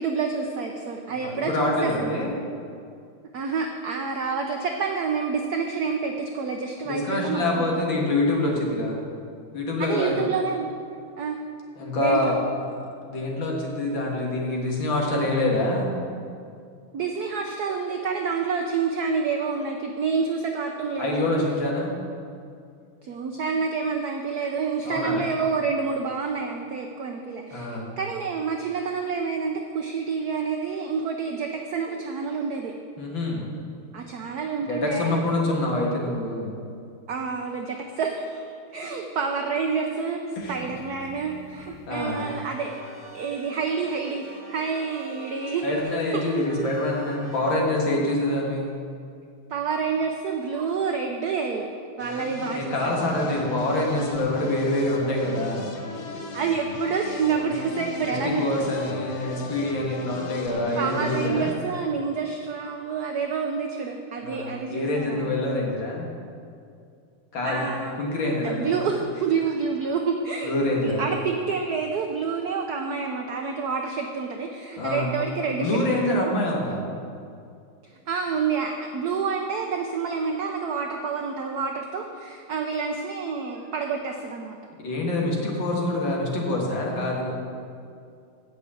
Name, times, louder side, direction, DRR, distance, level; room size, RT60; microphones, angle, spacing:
voice 1, 0.0-2.1 3.3-7.6 9.8-10.7 11.2-11.4 11.9-12.3 16.9-21.3 23.0-32.7 33.9-35.2 37.1-42.7 43.1-45.7 46.1-46.2 49.5-51.7 52.0-53.1 56.3-58.7 60.8-65.6 67.4-67.9 68.4-69.0 69.2-76.3 78.1-84.6, right 5 dB, 75° right, 3 dB, 0.9 m, -28 dB
voice 2, 1.2-2.3 6.9-9.0 9.5-10.3 11.8-12.4 13.0-15.9 21.0-22.0 24.8-25.2 27.5-27.9 33.0-33.5 34.7-36.5 38.8-38.9 40.4-40.7 41.9-42.2 45.6-48.7 52.5-55.7 58.1-61.6 64.2-66.1 67.3-67.7 68.0-68.9 70.4-71.1 74.8-75.1 75.5-76.8 84.8-87.4, left 2 dB, 60° left, -2 dB, 2.3 m, -26 dB
sound 1, 40.4-47.6, right 1 dB, 10° left, 0.9 m, -45 dB
sound 2, 52.0-61.5, left 3 dB, 80° left, 0.6 m, -37 dB
8.5 x 6.2 x 8.3 m, 2.4 s
omnidirectional pair, 2.4 m